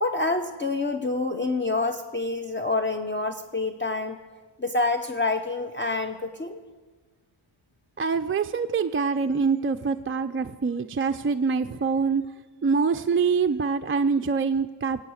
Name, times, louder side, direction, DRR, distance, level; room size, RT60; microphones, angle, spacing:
voice 1, 0.0-4.2 4.6-6.6, left 3 dB, 25° left, 6 dB, 0.8 m, -27 dB
voice 2, 8.0-12.2 12.6-15.0, right 5 dB, 25° right, 7 dB, 0.4 m, -25 dB
17.0 x 8.3 x 6.4 m, 1.4 s
cardioid pair, 75°, 50 cm